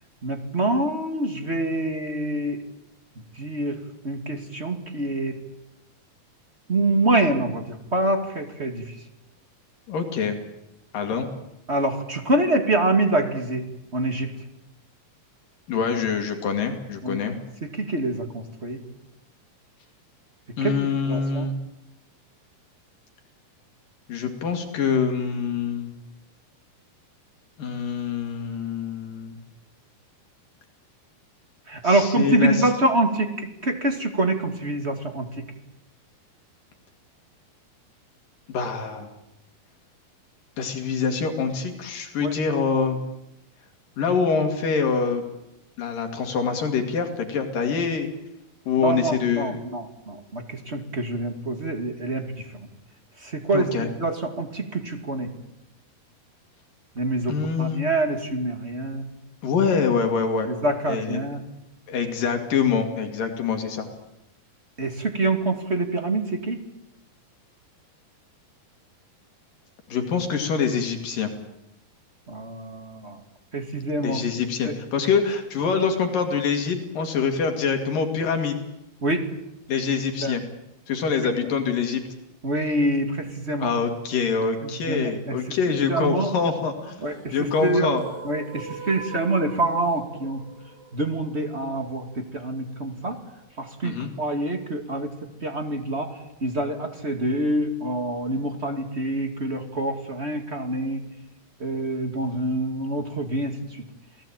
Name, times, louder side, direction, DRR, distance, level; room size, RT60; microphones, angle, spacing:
voice 1, 0.2-2.6 3.4-3.8 4.0-5.4 6.7-8.8 11.7-14.3 17.0-17.2 17.6-18.8 20.6-20.7 21.1-21.5 31.7-35.5 42.2-42.3 48.8-52.4 53.2-55.3 57.0-59.1 60.5-61.4 64.8-66.6 72.3-73.2 73.5-74.2 74.6-74.7 79.0-79.2 80.2-80.4 82.4-83.7 84.6-85.4 85.9-86.3 87.0-87.3 87.6-87.9 88.2-90.4 90.9-93.2 93.6-95.1 95.4-96.1 96.4-101.1 101.6-103.8, right 2 dB, 20° right, 6 dB, 1.9 m, -26 dB
voice 2, 9.9-10.4 10.9-11.3 15.7-17.4 20.6-21.6 24.1-25.9 27.6-29.4 31.8-32.7 38.5-39.1 40.6-43.0 44.0-45.2 45.8-48.1 48.7-49.6 53.5-53.9 57.3-57.8 59.4-60.5 60.9-61.2 61.9-63.9 69.9-71.3 74.0-78.6 79.7-80.4 80.9-82.0 83.6-88.0 93.8-94.1, left 5 dB, 65° left, 5 dB, 4.0 m, -25 dB
sound 1, 86.8-92.8, right 4 dB, 65° right, 5.6 m, -43 dB
28.5 x 18.5 x 9.0 m, 0.89 s
omnidirectional pair, 4.4 m